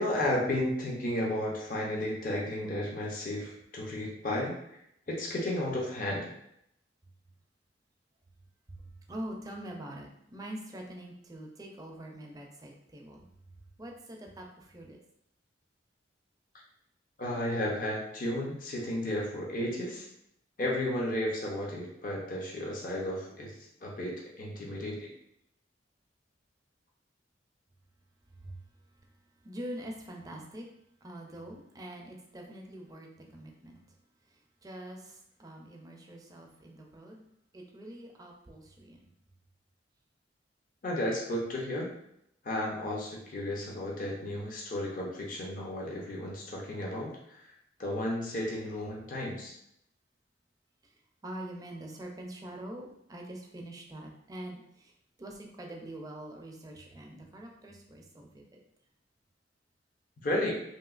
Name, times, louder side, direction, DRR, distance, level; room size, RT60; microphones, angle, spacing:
voice 1, 0.0-6.3 17.2-20.1 20.6-25.1 40.8-41.9 42.4-47.5 47.8-49.5 60.2-60.5, left 1 dB, 50° left, -2 dB, 0.6 m, -33 dB
voice 2, 8.8-13.2 13.8-15.0 28.4-28.6 29.4-30.7 31.0-33.8 34.3-37.2 37.5-39.0 50.8-50.9 51.2-54.9 55.2-58.5, right 1 dB, 20° right, 0 dB, 0.4 m, -44 dB
2.9 x 2.7 x 2.4 m, 0.75 s
head